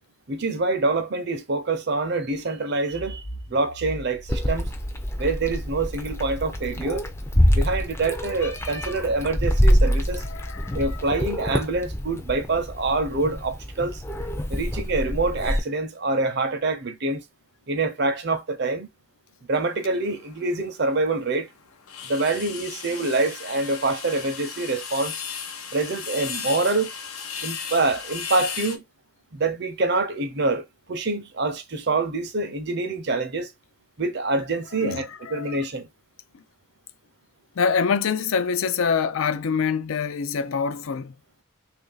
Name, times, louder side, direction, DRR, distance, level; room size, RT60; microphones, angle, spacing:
voice 1, 0.3-3.2 3.5-4.7 5.2-7.0 7.5-10.2 10.7-14.0 14.5-17.2 17.7-18.9 19.5-21.5 22.1-25.2 25.7-26.9 27.4-28.8 29.3-33.5 34.0-35.9, right 3 dB, 50° right, 0.6 m, -26 dB
Accelerating revving vroom, 2.9-10.2, equal, 50° left, 1.0 m, -40 dB
Meow, 4.3-15.6, equal, 10° left, 0.5 m, -25 dB
voice 2, 10.2-11.1 34.8-35.6 37.6-41.1, left 6 dB, 65° left, 0.4 m, -25 dB
sound 1, 19.5-20.5 20.9-21.0 21.3-21.4 21.6-28.8, left 7 dB, 90° left, 0.8 m, -35 dB
3.1 x 2.6 x 3.8 m
head